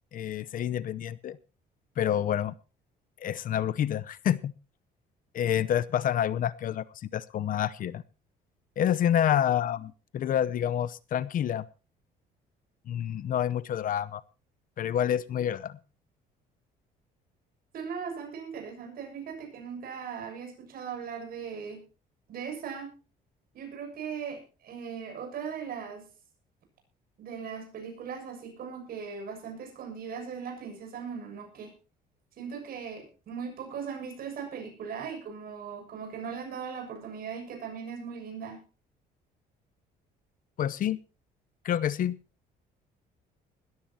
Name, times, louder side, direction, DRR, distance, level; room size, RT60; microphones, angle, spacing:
voice 1, 0.1-1.4 2.0-2.5 3.2-4.5 5.3-8.0 8.8-11.6 12.9-14.2 14.8-15.8 40.6-41.0 41.6-42.2, left 10 dB, 55° left, 17 dB, 0.8 m, -28 dB
voice 2, 17.7-21.8 22.3-22.9 23.5-26.1 27.2-31.7 32.4-38.6, right 6 dB, 60° right, 5 dB, 7.1 m, -39 dB
20.0 x 14.0 x 2.9 m, 0.33 s
cardioid pair, 110°, 17 cm